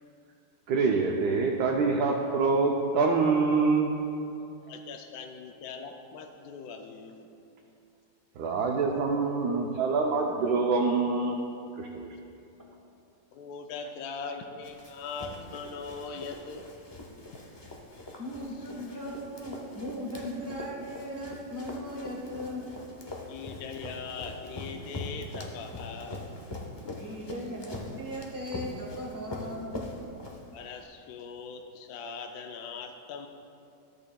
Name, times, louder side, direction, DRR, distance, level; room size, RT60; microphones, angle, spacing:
voice 1, 0.7-3.9 8.4-11.4 11.8-12.1, right 4 dB, 70° right, 0 dB, 1.1 m, -25 dB
voice 2, 4.6-7.3 13.3-16.7 23.3-26.2 26.8-27.2 30.5-33.3, left 5 dB, 70° left, 4 dB, 0.9 m, -41 dB
Run, 14.6-30.8, left 1 dB, 30° left, 0.4 m, -42 dB
voice 3, 18.2-22.6 27.0-29.7, equal, 10° right, -2 dB, 1.1 m, -38 dB
13.0 x 8.6 x 2.3 m, 2.6 s
omnidirectional pair, 2.0 m